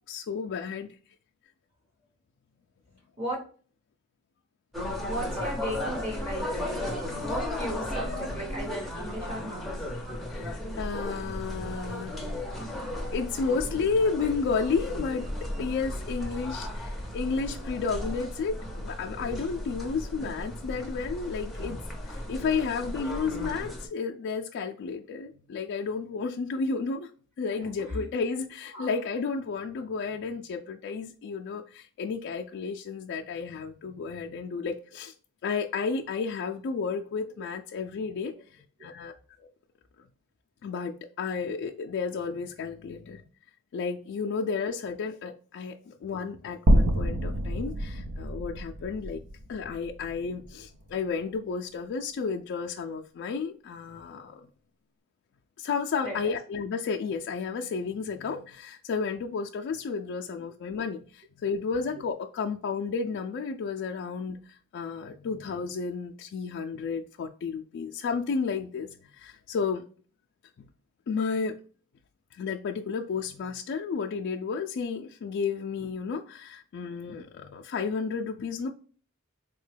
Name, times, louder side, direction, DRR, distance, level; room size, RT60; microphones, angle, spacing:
voice 1, 0.1-0.9 10.3-12.2 12.6-12.8 13.1-21.8 22.1-27.1 27.4-35.1 35.4-39.1 39.4-39.5 40.6-43.2 43.7-49.2 49.5-54.5 55.6-69.8 71.1-71.6 72.3-78.7, left 5 dB, 55° left, 0.3 m, -32 dB
sound 1, 4.7-23.9, left 1 dB, ahead, 0.6 m, -35 dB
voice 2, 5.1-9.9 27.6-28.0 28.7-28.9 37.4-37.5 38.8-38.9 56.0-56.3, equal, 30° right, 1.1 m, -36 dB
sound 2, 46.7-50.9, equal, 80° right, 0.5 m, -27 dB
3.9 x 2.2 x 3.2 m
head